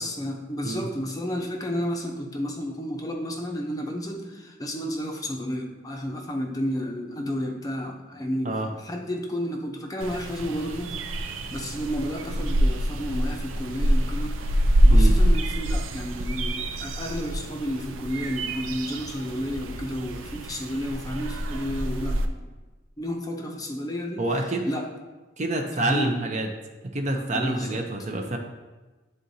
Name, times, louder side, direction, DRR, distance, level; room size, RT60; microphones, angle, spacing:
voice 1, 0.0-14.4 14.7-22.5 23.0-24.3 24.7-24.9 25.8-26.2 27.1-27.8, equal, 20° left, 1 dB, 0.6 m, -32 dB
sound 1, 10.0-22.2, right 1 dB, 75° right, 0.5 m, -25 dB
voice 2, 24.2-24.7 25.4-26.5 26.9-28.4, right 2 dB, 35° right, 3 dB, 0.6 m, -27 dB
10.5 x 3.8 x 2.7 m, 1.2 s
head